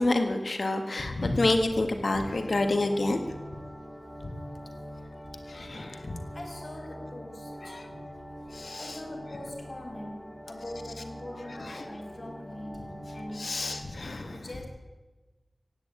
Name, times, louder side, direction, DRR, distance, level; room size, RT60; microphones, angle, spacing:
voice 1, 0.0-3.2 5.5-6.1 7.7-7.9 8.5-9.0 11.6-11.8 13.4-14.5, left 2 dB, 80° left, 6 dB, 1.8 m, -28 dB
sound 1, 2.1-13.8, equal, 15° left, 5.9 m, -43 dB
voice 2, 6.3-7.8 8.8-13.7 14.2-14.7, left 1 dB, 50° left, 2 dB, 2.8 m, -42 dB
15.5 x 9.5 x 8.8 m, 1.2 s
wide cardioid pair, 50°, 0 cm